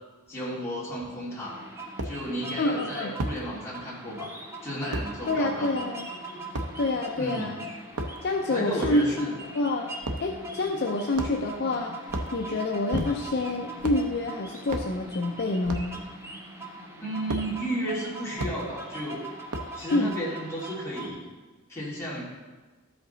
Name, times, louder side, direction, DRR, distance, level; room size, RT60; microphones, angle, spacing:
voice 1, 0.3-1.6 2.0-4.3 4.6-5.8 7.2-7.5 8.5-9.3 17.0-19.3 19.7-21.3 21.7-22.2, right 1 dB, 10° left, -7 dB, 2.5 m, -33 dB
sound 1, 1.0-1.1 2.0-2.2 3.2-3.4 4.9-5.1 6.5-6.7 7.8-8.3 8.8-9.0 10.0-10.3 11.1-11.6 12.0-12.4 12.9-13.4 13.8-14.1 14.7-14.9 15.6-15.9 17.3-17.5 18.4-18.6 19.5-19.8, right 1 dB, 80° right, 0.8 m, -32 dB
sound 2, 1.4-21.1, right 1 dB, 10° right, 0.9 m, -41 dB
voice 2, 2.6-3.1 5.3-6.1 6.8-7.6 8.2-9.3 9.5-9.9 10.2-16.0 19.9-20.1, left 2 dB, 45° left, 2 dB, 0.5 m, -27 dB
13.0 x 5.1 x 3.9 m, 1.3 s
head